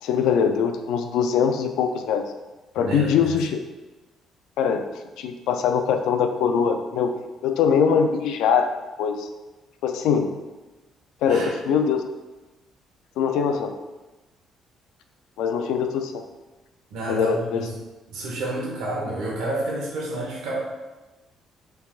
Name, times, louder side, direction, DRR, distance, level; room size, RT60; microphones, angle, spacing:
voice 1, 0.0-2.2 2.7-3.6 4.6-4.8 5.2-7.1 7.4-8.7 9.0-9.3 9.8-10.3 11.2-12.0 13.2-13.7 15.4-16.1 17.1-17.7, left 7 dB, 90° left, 6 dB, 0.4 m, -22 dB
voice 2, 2.8-3.3 11.3-11.5 16.9-17.6 18.1-20.6, right 2 dB, 85° right, -3 dB, 1.0 m, -29 dB
5.7 x 3.4 x 2.4 m, 1.1 s
cardioid pair, 175°, 0 cm